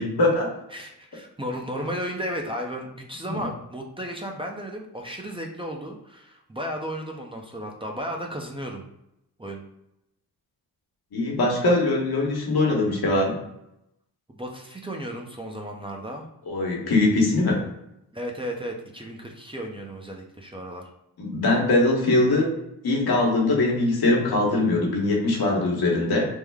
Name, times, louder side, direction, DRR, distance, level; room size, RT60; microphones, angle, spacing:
voice 1, 0.0-0.5 11.1-13.4 16.4-17.6 21.2-22.5 22.8-26.3, left 2 dB, 70° left, -2 dB, 1.2 m, -22 dB
voice 2, 0.7-8.8 9.4-9.6 14.3-16.3 18.1-20.9, equal, 15° right, 0 dB, 0.6 m, -34 dB
3.6 x 2.1 x 3.4 m, 0.85 s
cardioid pair, 65°, 39 cm